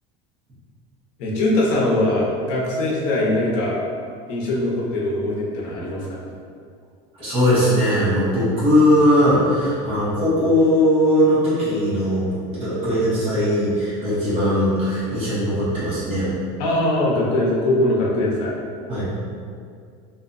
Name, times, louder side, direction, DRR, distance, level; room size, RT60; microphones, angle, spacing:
voice 1, 1.2-3.8 4.3-6.2 16.6-18.5, left 1 dB, 60° left, -4 dB, 0.6 m, -21 dB
voice 2, 7.2-16.3 18.9-19.0, equal, 35° right, -12 dB, 1.0 m, -19 dB
2.5 x 2.1 x 2.5 m, 2.2 s
cardioid pair, 150°, 15 cm